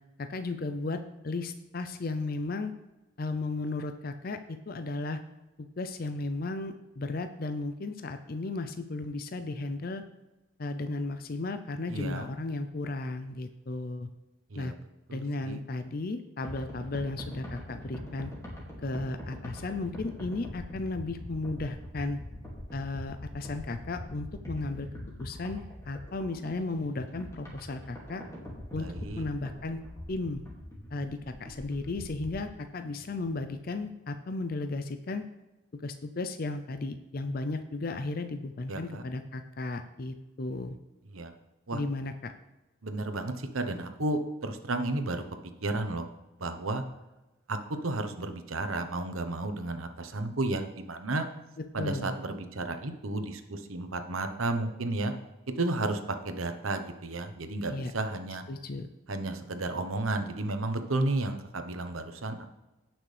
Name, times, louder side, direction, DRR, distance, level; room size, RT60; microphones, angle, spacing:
voice 1, 0.2-2.7 3.2-5.2 5.6-10.0 10.6-14.1 14.5-14.7 15.1-18.3 18.8-22.2 22.7-24.9 25.2-28.2 28.7-28.9 29.2-29.8 30.1-30.4 30.9-35.2 35.7-40.8 41.7-42.3 51.6-52.2 57.7-57.9 58.5-58.9, left 2 dB, 45° left, 8 dB, 0.5 m, -35 dB
voice 2, 11.9-12.3 14.5-14.7 15.1-15.6 28.8-29.2 38.7-39.0 41.1-41.3 41.7-41.8 42.8-45.2 45.6-46.1 46.4-46.8 47.5-51.3 51.7-55.1 55.6-56.0 56.2-58.4 59.1-62.5, right 2 dB, 85° right, 8 dB, 1.0 m, -32 dB
sound 1, 16.4-32.5, left 1 dB, 15° left, 2.3 m, -43 dB
17.5 x 6.0 x 3.3 m, 1.0 s
head